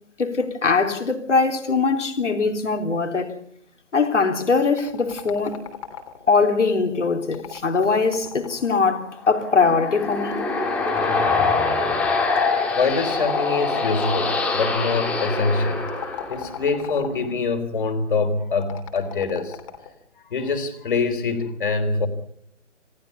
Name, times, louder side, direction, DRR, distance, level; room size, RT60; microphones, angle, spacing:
voice 1, 0.2-3.3 3.9-5.6 6.3-10.6, left 4 dB, 70° left, 3.8 m, -21 dB
sound 1, 4.8-6.4 7.2-9.1 10.0-11.9 12.9-14.2 15.8-17.4 18.6-19.9, left 9 dB, 25° left, 3.2 m, -38 dB
sound 2, 9.2-16.7, left 3 dB, 5° left, 2.4 m, -24 dB
voice 2, 12.8-19.6 20.3-22.1, left 4 dB, 40° left, 3.7 m, -24 dB
28.0 x 19.0 x 5.5 m
figure-of-eight pair, 160°, 38 cm